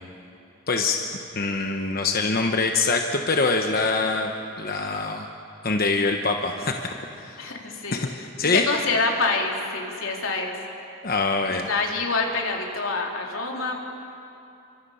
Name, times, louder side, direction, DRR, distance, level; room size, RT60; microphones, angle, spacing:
voice 1, 0.7-1.0 1.3-4.3 4.6-5.3 5.6-6.7 7.2-7.4 7.9-8.1 8.4-8.6 11.0-11.7, left 3 dB, 45° left, 3 dB, 1.0 m, -24 dB
voice 2, 7.4-8.1 8.4-10.6 11.4-13.8, left 3 dB, 85° left, 0 dB, 3.3 m, -26 dB
30.0 x 25.0 x 5.7 m, 2.7 s
head